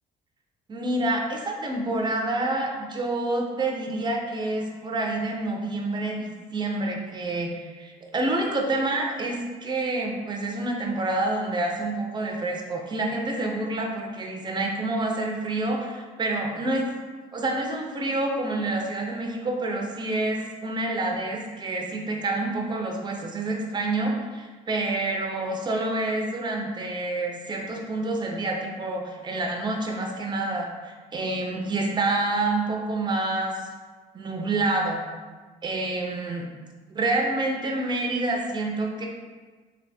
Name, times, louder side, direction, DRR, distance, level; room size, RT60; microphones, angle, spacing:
voice 1, 0.7-16.9 17.3-33.7 34.1-35.0 35.6-36.4 36.9-39.1, right 2 dB, 25° right, 1 dB, 0.7 m, -28 dB
3.3 x 2.7 x 4.2 m, 1.4 s
cardioid pair, 110°, 17 cm